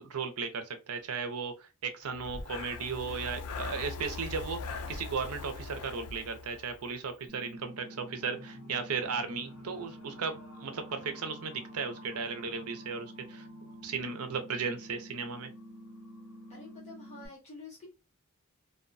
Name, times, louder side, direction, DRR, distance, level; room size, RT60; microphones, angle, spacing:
voice 1, 0.0-13.5 13.8-15.5, right 5 dB, 80° right, 0.6 m, -36 dB
Breathing, 2.1-7.1, left 4 dB, 90° left, 0.4 m, -41 dB
sound 1, 7.3-17.3, equal, ahead, 0.9 m, -49 dB
sound 2, 7.6-16.8, equal, 60° left, 1.2 m, -56 dB
voice 2, 16.5-17.9, left 3 dB, 30° left, 0.7 m, -48 dB
2.6 x 2.1 x 2.5 m
head